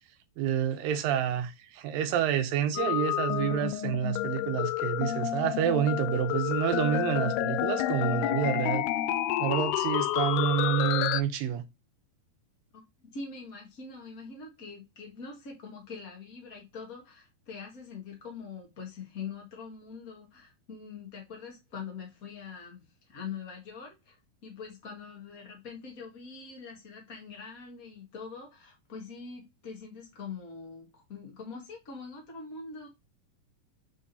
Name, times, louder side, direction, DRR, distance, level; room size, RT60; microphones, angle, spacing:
voice 1, 0.4-8.9 9.4-11.6, right 10 dB, 80° right, 2.3 m, -28 dB
sound 1, 2.8-11.2, left 13 dB, 90° left, 2.6 m, -29 dB
voice 2, 12.7-32.9, left 5 dB, 45° left, 1.1 m, -43 dB
7.4 x 3.7 x 4.1 m
omnidirectional pair, 4.5 m